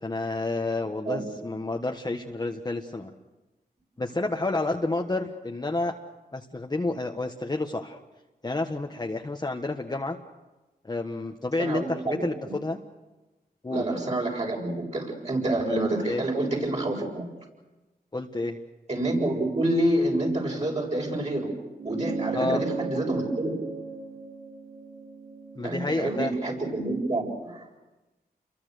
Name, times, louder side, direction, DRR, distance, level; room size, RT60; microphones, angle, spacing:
voice 1, 0.0-3.1 4.0-5.9 6.3-8.0 8.4-10.2 10.8-12.8 13.6-13.8 16.0-16.2 18.1-18.6 22.3-22.6 25.5-26.3, left 2 dB, 25° left, 2 dB, 1.4 m, -30 dB
voice 2, 11.6-12.5 13.7-17.3 18.9-21.5 21.8-23.7 25.6-27.8, right 1 dB, 45° right, -2 dB, 7.6 m, -28 dB
sound 1, 21.8-26.6, right 4 dB, 80° right, 4.1 m, -36 dB
29.5 x 23.0 x 6.6 m, 1.1 s
wide cardioid pair, 105°, 17 cm